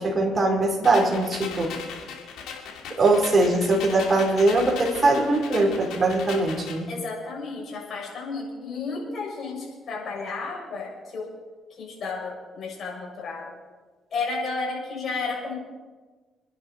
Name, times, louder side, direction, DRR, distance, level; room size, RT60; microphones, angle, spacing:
voice 1, 0.0-1.7 2.9-6.9, right 2 dB, 30° right, 0 dB, 4.6 m, -21 dB
little bit more, 0.8-6.8, left 6 dB, 85° left, 2.8 m, -38 dB
voice 2, 6.9-11.3 11.8-13.5 14.1-15.6, left 4 dB, 55° left, -2 dB, 6.9 m, -32 dB
27.0 x 11.0 x 4.7 m, 1.3 s
cardioid pair, 90°, 0 cm